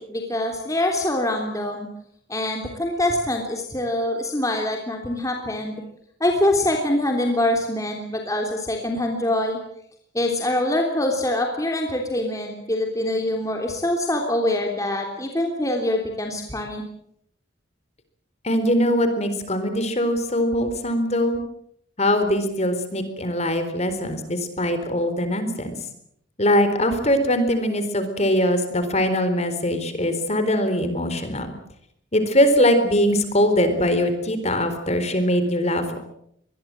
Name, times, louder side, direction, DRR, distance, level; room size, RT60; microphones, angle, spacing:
voice 1, 0.0-1.9 2.3-5.8 6.2-9.6 10.1-16.8, left 1 dB, 15° left, 2 dB, 3.3 m, -24 dB
voice 2, 18.4-21.4 22.0-25.8 26.4-31.5 32.1-36.0, equal, 35° left, 9 dB, 4.1 m, -22 dB
25.5 x 21.0 x 7.7 m, 0.72 s
head